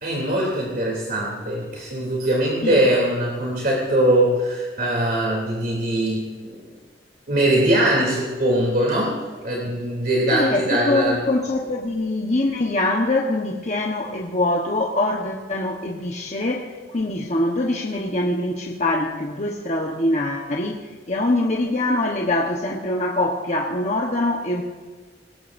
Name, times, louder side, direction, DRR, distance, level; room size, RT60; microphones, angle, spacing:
voice 1, 0.0-6.6 7.3-11.2, right 1 dB, 55° right, -3 dB, 3.0 m, -21 dB
voice 2, 10.3-24.6, left 1 dB, 40° left, 0 dB, 1.1 m, -23 dB
20.5 x 18.5 x 2.6 m, 1.5 s
head